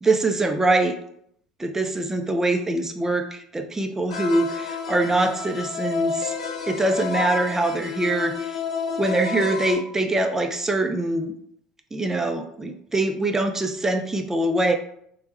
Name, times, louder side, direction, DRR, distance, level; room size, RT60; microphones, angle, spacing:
voice 1, 0.0-0.9 1.6-6.3 6.7-8.5 9.0-11.3 11.9-14.7, right 2 dB, 15° right, 5 dB, 0.4 m, -23 dB
sound 1, 4.1-9.7, left 5 dB, 80° left, 0.4 m, -30 dB
3.1 x 2.1 x 3.0 m, 0.71 s
figure-of-eight pair, 65°, 3 cm